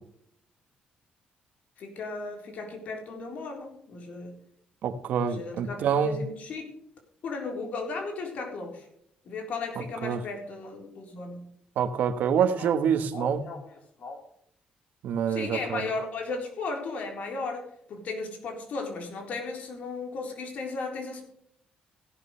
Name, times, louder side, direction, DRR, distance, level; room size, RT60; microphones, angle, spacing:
voice 1, 1.8-4.4 5.2-6.7 7.2-8.9 9.3-11.5 12.6-12.7 13.1-14.2 15.3-21.2, left 3 dB, 60° left, 4.0 m, -36 dB
voice 2, 4.8-6.2 10.0-10.2 11.8-13.5 15.0-15.8, right 7 dB, 75° right, 1.3 m, -26 dB
16.5 x 11.5 x 3.3 m
cardioid pair, 140°, 3 cm